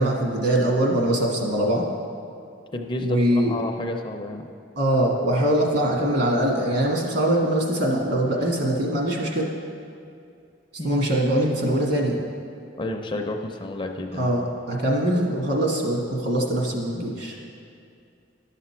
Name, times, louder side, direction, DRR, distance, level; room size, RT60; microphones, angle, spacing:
voice 1, 0.0-1.8 3.0-3.5 4.8-9.5 10.8-12.2 14.1-17.3, right 1 dB, 60° right, -1 dB, 1.6 m, -22 dB
voice 2, 2.7-3.2 3.5-4.5 10.8-11.0 12.8-14.3, left 2 dB, 25° left, 4 dB, 0.5 m, -30 dB
11.5 x 6.7 x 4.4 m, 2.5 s
head